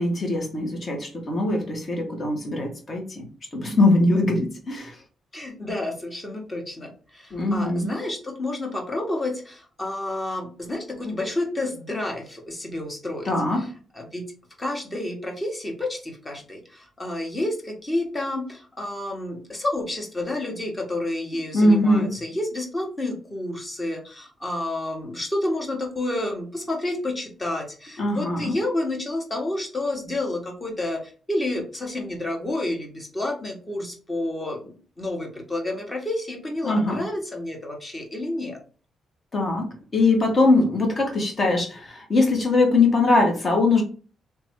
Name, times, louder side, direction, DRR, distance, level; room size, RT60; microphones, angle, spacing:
voice 1, 0.0-3.2 3.5-5.0 7.3-7.9 13.3-13.7 21.5-22.2 28.0-28.6 36.6-37.0 39.3-39.7 39.9-43.8, left 2 dB, 40° left, 1 dB, 1.6 m, -21 dB
voice 2, 5.3-13.7 13.9-14.2 14.6-38.6, left 1 dB, 20° left, 1 dB, 1.5 m, -30 dB
3.5 x 3.0 x 4.6 m, 0.40 s
cardioid pair, 110°, 0 cm